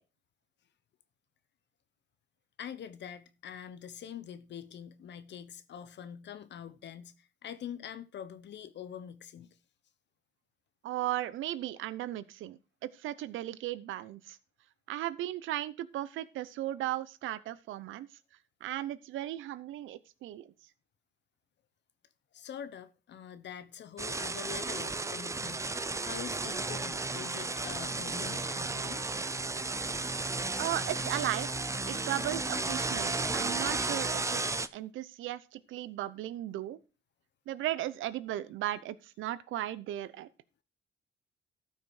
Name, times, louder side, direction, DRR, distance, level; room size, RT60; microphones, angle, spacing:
voice 1, 2.6-9.6 22.3-29.1, left 9 dB, 60° left, 1.0 m, -45 dB
voice 2, 10.8-14.4 14.9-18.1 18.6-20.5 30.6-31.5 31.9-34.4 34.7-36.8 37.5-40.3, right 13 dB, 85° right, 0.8 m, -36 dB
sound 1, 24.0-34.7, right 3 dB, 15° right, 0.6 m, -34 dB
13.0 x 5.9 x 4.9 m
cardioid pair, 90°, 20 cm